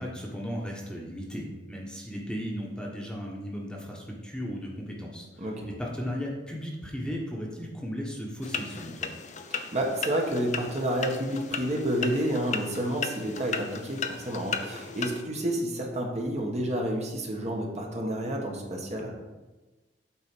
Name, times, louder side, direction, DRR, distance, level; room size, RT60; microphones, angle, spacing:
voice 1, 0.0-9.1, equal, 5° left, -2 dB, 1.2 m, -36 dB
voice 2, 5.4-5.7 9.5-19.1, right 1 dB, 40° right, 0 dB, 1.4 m, -30 dB
sound 1, 8.4-15.2, left 6 dB, 45° left, 0.6 m, -36 dB
8.7 x 4.1 x 6.1 m, 1.2 s
head